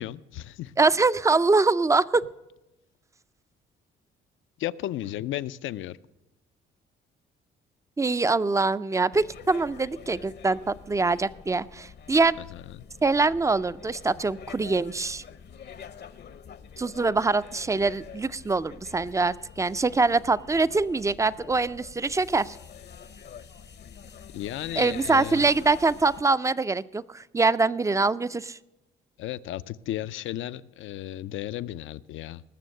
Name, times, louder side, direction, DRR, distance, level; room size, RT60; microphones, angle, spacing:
voice 1, 0.0-0.7 4.6-6.0 12.8-12.9 24.3-25.5 29.2-32.4, left 13 dB, 75° left, 16 dB, 0.5 m, -34 dB
voice 2, 0.8-2.3 8.0-12.4 13.0-15.2 16.8-22.6 24.8-28.6, right 3 dB, 15° right, 17 dB, 0.4 m, -24 dB
sound 1, 9.1-26.2, left 7 dB, 60° left, 0.8 m, -46 dB
19.5 x 6.9 x 6.5 m, 0.98 s
cardioid pair, 90°, 20 cm